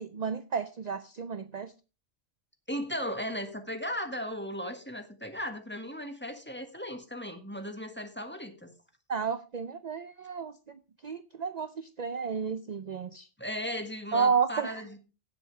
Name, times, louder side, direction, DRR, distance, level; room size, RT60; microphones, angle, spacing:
voice 1, 0.0-1.7 9.1-13.3 14.1-14.8, right 6 dB, 45° right, 12 dB, 0.7 m, -32 dB
voice 2, 2.7-8.7 13.4-15.0, equal, 10° left, 6 dB, 1.6 m, -36 dB
17.0 x 7.7 x 3.3 m, 0.32 s
omnidirectional pair, 1.1 m